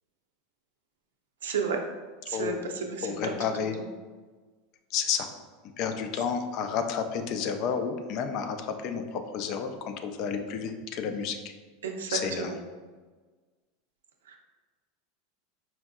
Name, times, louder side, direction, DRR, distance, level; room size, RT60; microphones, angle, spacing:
voice 1, 1.4-1.8 2.3-3.3 3.8-3.9 11.8-12.6 14.3-14.4, right 5 dB, 85° right, 3 dB, 0.5 m, -32 dB
voice 2, 3.0-3.8 4.9-5.3 5.8-11.5 12.1-12.5, left 6 dB, 55° left, 7 dB, 0.4 m, -31 dB
4.4 x 2.6 x 2.3 m, 1.4 s
hypercardioid pair, 95°, 0 cm